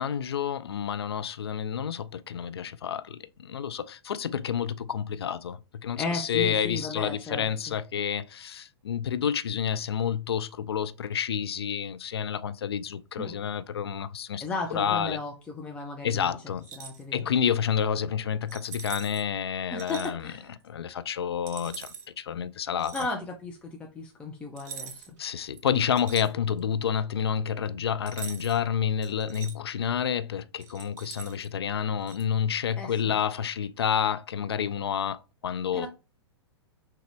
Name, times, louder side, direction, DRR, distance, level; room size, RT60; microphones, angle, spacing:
voice 1, 0.0-14.5 14.7-15.2 16.0-16.6 17.1-20.2 20.6-21.9 22.2-22.9 25.2-35.9, left 8 dB, 65° left, 0.4 m, -29 dB
voice 2, 6.0-7.8 13.2-13.5 14.4-16.3 16.7-17.2 19.7-20.6 22.9-25.1 32.8-33.1 35.7-35.9, left 3 dB, 10° left, 0.5 m, -35 dB
sound 1, 16.6-17.0 18.5-19.2 19.8-20.1 21.5-22.1 22.8-23.1 24.6-25.2 25.5-26.7 28.1-28.6 29.0-29.5 30.6-31.5 32.1-32.2, right 7 dB, 40° right, 0.7 m, -43 dB
5.9 x 2.3 x 3.4 m
figure-of-eight pair, 105°, 14 cm